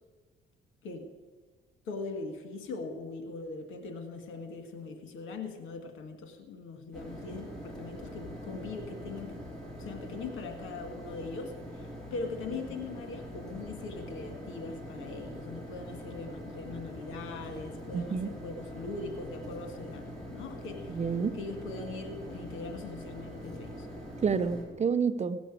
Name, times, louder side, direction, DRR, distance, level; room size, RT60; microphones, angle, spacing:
voice 1, 1.9-9.4 9.8-21.0 21.3-23.9, left 3 dB, 85° left, 6 dB, 1.8 m, -41 dB
sound 1, 6.9-24.6, equal, 5° left, 4.1 m, -43 dB
voice 2, 17.9-18.3 20.9-21.4 24.2-25.4, right 6 dB, 35° right, 12 dB, 0.7 m, -29 dB
17.0 x 6.1 x 8.5 m, 1.5 s
cardioid pair, 90°, 20 cm